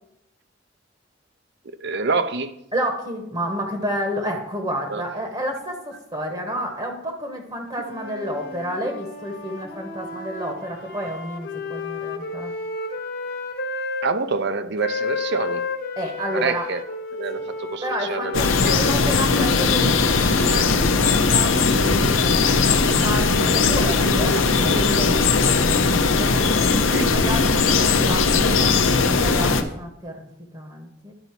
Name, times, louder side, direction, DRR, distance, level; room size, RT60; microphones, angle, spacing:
voice 1, 1.8-2.5 4.9-5.0 14.0-15.6 16.3-16.8 17.1-17.8 18.1-18.8 26.9-27.1, right 4 dB, 60° right, 11 dB, 0.6 m, -26 dB
voice 2, 2.7-12.5 16.0-16.7 17.3-17.5 17.8-25.8 26.1-30.3 30.5-31.1, equal, 25° right, 3 dB, 1.1 m, -31 dB
sound 1, 7.8-14.1 14.8-21.9, left 3 dB, 55° left, 1.4 m, -33 dB
sound 2, 18.3-29.6, left 4 dB, 80° left, 0.8 m, -19 dB
11.0 x 4.0 x 5.8 m, 0.80 s
head